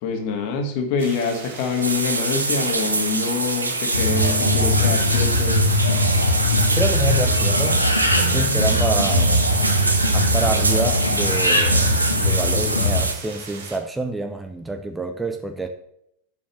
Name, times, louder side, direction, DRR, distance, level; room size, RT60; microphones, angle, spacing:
voice 1, 0.0-5.7, left 5 dB, 45° left, 4 dB, 1.9 m, -25 dB
sound 1, 1.0-13.8, right 5 dB, 60° right, 1.7 m, -39 dB
sound 2, 1.8-13.1, right 3 dB, 80° right, 1.0 m, -24 dB
sound 3, 3.9-13.0, left 1 dB, 85° left, 1.4 m, -20 dB
voice 2, 6.7-7.9 8.2-9.5 10.1-15.7, right 2 dB, 10° right, 6 dB, 0.7 m, -27 dB
7.2 x 6.3 x 7.2 m, 0.75 s
figure-of-eight pair, 90°, 0 cm